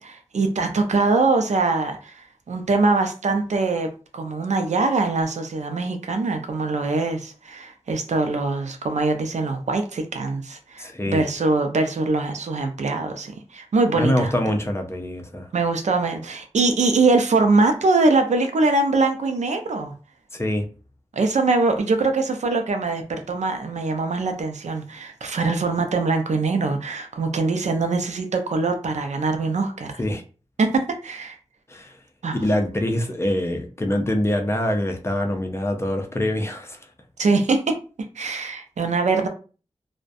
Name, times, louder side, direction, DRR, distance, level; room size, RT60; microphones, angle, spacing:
voice 1, 0.0-3.9 4.1-14.3 15.5-19.9 21.1-30.0 30.6-31.4 32.2-32.4 37.2-37.8 38.2-39.3, right 3 dB, 80° right, 0.4 m, -23 dB
voice 2, 10.8-11.3 14.0-15.5 20.3-20.7 30.0-30.2 31.7-32.0 32.3-36.8, left 1 dB, 20° left, 0.5 m, -24 dB
2.3 x 2.1 x 2.5 m
wide cardioid pair, 90°, 12 cm